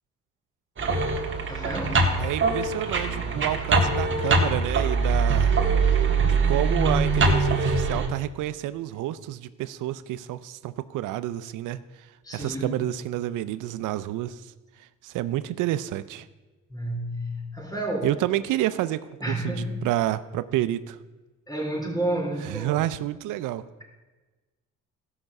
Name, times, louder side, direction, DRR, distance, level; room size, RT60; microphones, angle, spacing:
sound 1, 0.8-8.1, right 4 dB, 40° right, 1.7 m, -23 dB
voice 1, 1.5-2.1 12.2-12.7 16.7-18.1 19.2-19.9 21.5-22.8, right 1 dB, 10° left, -1 dB, 3.8 m, -30 dB
voice 2, 2.2-5.5 6.3-12.1 12.3-14.5 14.8-16.3 18.0-21.0 22.4-23.6, right 14 dB, 90° right, 14 dB, 0.5 m, -29 dB
14.5 x 5.8 x 6.5 m, 1.2 s
cardioid pair, 90°, 30 cm